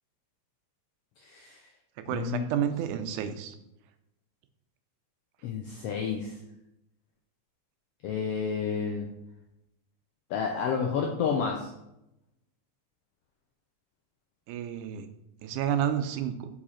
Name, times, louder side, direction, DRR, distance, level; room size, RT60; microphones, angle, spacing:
voice 1, 1.2-1.6 2.1-2.5 5.4-6.4 8.0-9.1 10.3-11.7, left 6 dB, 85° left, 1 dB, 1.3 m, -30 dB
voice 2, 2.1-3.6 14.5-15.1 15.4-16.5, right 9 dB, 90° right, 9 dB, 2.1 m, -30 dB
5.5 x 4.8 x 4.2 m, 0.86 s
omnidirectional pair, 3.4 m